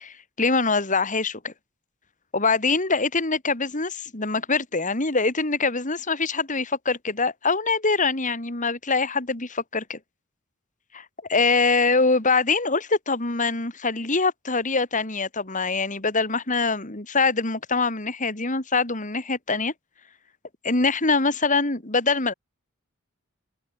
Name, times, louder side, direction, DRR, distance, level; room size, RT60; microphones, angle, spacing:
voice 1, 0.0-1.5 2.3-10.0 10.9-19.7 20.6-22.3, left 4 dB, 35° left, 3.1 m, -24 dB
head